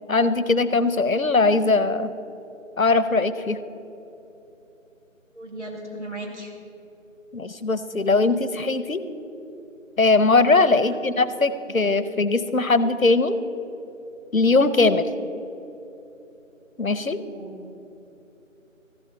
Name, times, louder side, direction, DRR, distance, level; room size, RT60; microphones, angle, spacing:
voice 1, 0.1-2.1 2.8-3.6 7.3-9.0 10.0-13.4 14.3-15.1 16.8-17.3, left 3 dB, 80° left, 14 dB, 0.9 m, -20 dB
voice 2, 5.3-6.5 10.7-11.0 17.2-17.6, right 1 dB, 60° right, 0 dB, 2.2 m, -37 dB
14.0 x 8.0 x 7.4 m, 3.0 s
figure-of-eight pair, 175°, 40 cm